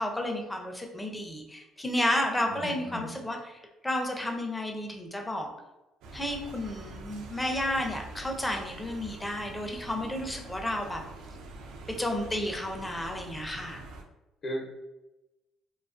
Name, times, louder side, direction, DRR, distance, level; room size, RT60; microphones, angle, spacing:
voice 1, 0.0-5.5 6.1-11.0 11.9-13.8, left 1 dB, 10° left, 2 dB, 0.5 m, -32 dB
voice 2, 2.4-3.2 14.4-14.8, equal, 45° left, -1 dB, 0.7 m, -37 dB
sound 1, 6.0-14.0, right 2 dB, 80° right, 0.3 m, -45 dB
2.3 x 2.3 x 2.4 m, 1.0 s
cardioid pair, 95°, 0 cm